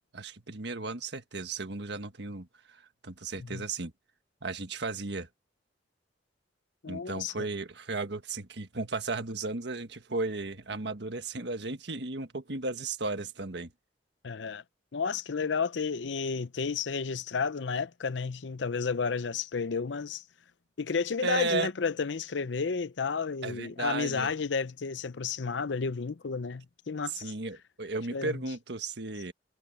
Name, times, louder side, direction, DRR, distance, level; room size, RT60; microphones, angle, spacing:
voice 1, 0.1-3.9 4.4-5.3 6.9-13.7 21.2-21.7 23.4-24.3 27.1-29.3, right 3 dB, 70° right, 1.6 m, -35 dB
voice 2, 6.8-7.4 14.2-14.6 14.9-20.2 20.8-27.3 28.1-28.4, left 5 dB, 80° left, 0.7 m, -32 dB
head